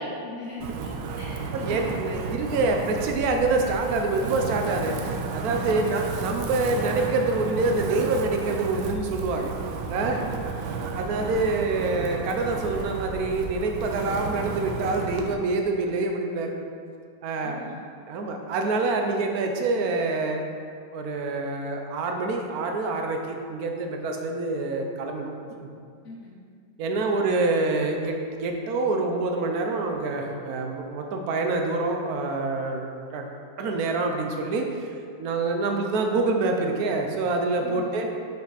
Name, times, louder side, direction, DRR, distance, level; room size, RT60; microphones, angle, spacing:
voice 1, 0.0-2.2 5.5-5.9 10.2-10.8 17.4-17.7 26.0-26.3 37.6-37.9, left 2 dB, 50° left, -4 dB, 0.9 m, -42 dB
Wind, 0.6-15.3, right 4 dB, 85° right, 1.4 m, -32 dB
voice 2, 1.5-9.5 9.9-10.2 10.9-16.5 17.2-17.6 18.1-20.4 20.9-25.3 25.6-25.7 26.8-33.3 33.6-34.9 35.2-38.1, right 3 dB, 65° right, 3 dB, 0.9 m, -26 dB
6.8 x 5.2 x 4.0 m, 2.2 s
omnidirectional pair, 2.2 m